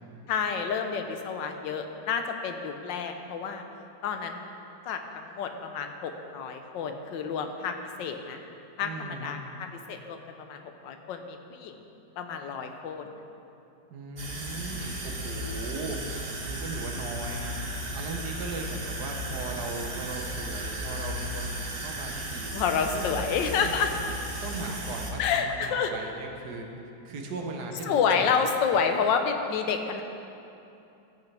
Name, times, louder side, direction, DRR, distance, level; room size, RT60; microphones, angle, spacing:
voice 1, 0.3-3.6 4.0-4.5 4.9-8.4 8.8-11.8 12.2-13.1 22.5-23.9 25.2-25.9 27.9-30.0, left 6 dB, 80° left, 6 dB, 1.4 m, -29 dB
voice 2, 8.8-9.3 13.9-16.0 16.4-17.6 17.9-22.5 22.9-23.0 23.4-23.7 24.4-26.7 27.0-28.4, right 3 dB, 65° right, 2 dB, 1.4 m, -38 dB
sound 1, 14.2-25.1, right 1 dB, 40° right, 1.1 m, -35 dB
14.0 x 8.2 x 3.4 m, 2.8 s
omnidirectional pair, 2.0 m